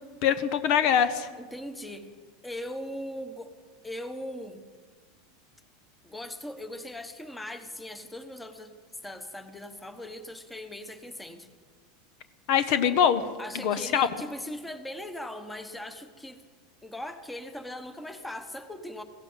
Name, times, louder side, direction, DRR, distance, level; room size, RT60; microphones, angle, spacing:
voice 1, 0.2-1.3 12.5-13.2 13.5-14.1, left 8 dB, 60° left, 12 dB, 0.9 m, -23 dB
voice 2, 1.4-2.1 2.4-3.5 3.8-4.6 6.0-8.7 9.0-11.5 13.4-16.4 16.8-19.0, left 1 dB, 5° left, 9 dB, 1.2 m, -39 dB
16.0 x 16.0 x 5.6 m, 1.5 s
supercardioid pair, 130°, 0 cm